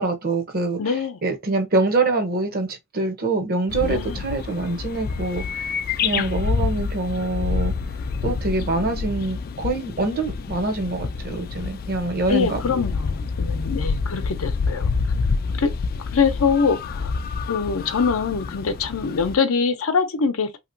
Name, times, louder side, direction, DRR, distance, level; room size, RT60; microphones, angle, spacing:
voice 1, 0.0-0.9 1.2-5.7 6.0-7.7 8.2-12.6, right 3 dB, 50° right, 0.8 m, -25 dB
voice 2, 0.8-1.2 3.8-4.2 6.1-6.3 12.3-14.9 15.6-15.7 16.1-17.1 17.5-20.6, left 5 dB, 90° left, 0.6 m, -23 dB
sound 1, 3.7-19.4, left 5 dB, 45° left, 0.3 m, -27 dB
2.9 x 2.9 x 2.6 m
head